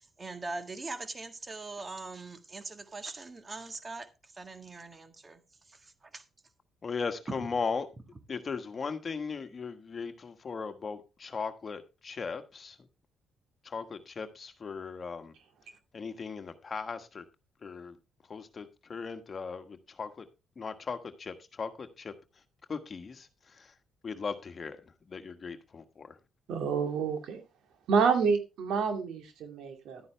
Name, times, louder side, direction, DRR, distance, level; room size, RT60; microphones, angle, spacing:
voice 1, 0.2-4.1 4.4-5.4 6.1-6.2 7.4-7.5, right 3 dB, 30° right, 1.6 m, -41 dB
voice 2, 6.8-7.9 8.3-12.8 13.6-15.3 15.9-17.2 17.6-18.0 18.3-20.2 20.5-22.1 22.7-23.7 24.0-24.8 25.1-26.2, left 5 dB, 40° left, 1.4 m, -38 dB
voice 3, 26.5-27.4 27.9-30.0, right 5 dB, 80° right, 2.5 m, -28 dB
11.5 x 9.5 x 3.3 m
cardioid pair, 90°, 0 cm